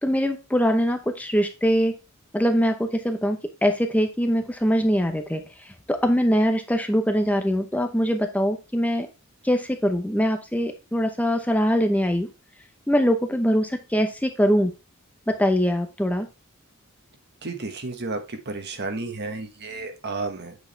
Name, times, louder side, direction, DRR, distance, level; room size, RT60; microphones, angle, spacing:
voice 1, 0.0-2.0 2.3-5.4 5.9-9.1 9.4-12.3 12.9-14.7 15.3-16.3, equal, 5° left, 6 dB, 0.8 m, -22 dB
voice 2, 17.4-20.6, right 3 dB, 55° right, 6 dB, 1.3 m, -32 dB
8.2 x 4.8 x 3.3 m, 0.28 s
head